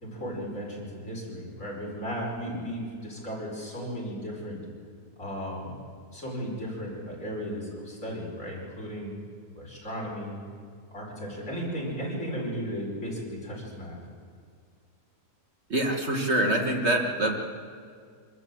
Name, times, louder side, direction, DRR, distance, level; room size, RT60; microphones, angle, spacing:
voice 1, 0.0-4.6 5.2-5.7 6.1-9.2 9.5-10.4 10.9-14.0, equal, 50° left, -3 dB, 5.4 m, -35 dB
voice 2, 15.7-17.4, right 1 dB, 45° right, 2 dB, 1.8 m, -25 dB
25.0 x 14.0 x 7.6 m, 2.1 s
omnidirectional pair, 1.7 m